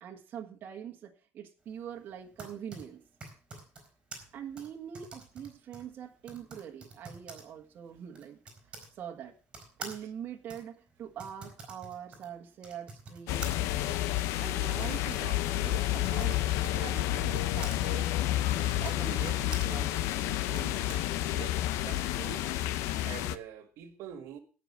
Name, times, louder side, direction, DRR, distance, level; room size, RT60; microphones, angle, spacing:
voice 1, 0.0-3.0 4.3-8.4 8.7-9.3 9.8-13.5 14.4-18.1 18.5-20.8, right 9 dB, 40° right, 1.7 m, -44 dB
Typing, 2.1-8.9 9.5-17.8 18.6-21.0, right 3 dB, 20° right, 3.9 m, -48 dB
sound 1, 13.3-23.4, left 14 dB, 85° left, 0.8 m, -30 dB
voice 2, 21.3-22.5 23.0-24.4, right 9 dB, 70° right, 1.8 m, -45 dB
17.0 x 6.1 x 6.2 m
cardioid pair, 175°, 5 cm